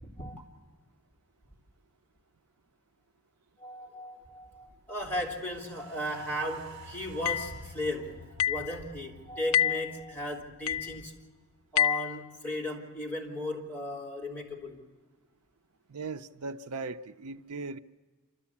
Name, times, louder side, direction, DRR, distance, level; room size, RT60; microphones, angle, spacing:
voice 1, 3.6-11.2 11.7-14.8, equal, 10° left, 3.5 m, -36 dB
sound 1, 5.3-11.6 12.0-12.1, right 2 dB, 55° right, 1.6 m, -50 dB
sound 2, 7.3-7.5 8.4-8.7 9.5-9.9 10.7-10.9 11.8-12.1, left 11 dB, 60° left, 0.6 m, -27 dB
voice 2, 15.9-17.8, right 3 dB, 80° right, 0.6 m, -38 dB
27.5 x 13.5 x 8.5 m
head